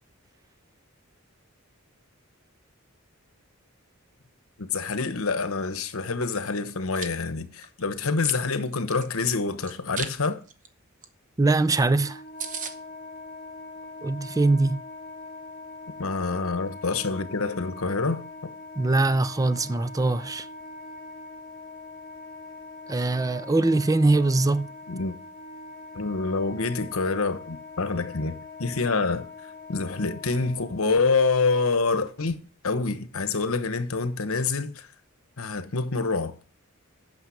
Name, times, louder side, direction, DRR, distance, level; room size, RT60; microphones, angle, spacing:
voice 1, 4.6-10.4 16.0-18.2 24.9-25.2 25.9-29.3 29.7-32.4 32.6-34.9 35.4-36.4, left 4 dB, 75° left, 1.1 m, -26 dB
Chewing mastication, 6.7-7.1 7.6-9.1 9.6-10.1 10.5-10.7 11.0-11.1 11.4-11.5 11.8-11.9 12.1-12.2 12.4-12.7, right 6 dB, 40° right, 0.9 m, -35 dB
voice 2, 11.4-12.2 14.0-14.8 18.8-20.5 22.9-24.7, right 2 dB, 15° right, 0.4 m, -22 dB
Wind instrument woodwind instrument, 11.6-31.1, left 3 dB, 40° left, 1.8 m, -43 dB
8.9 x 6.3 x 6.4 m
head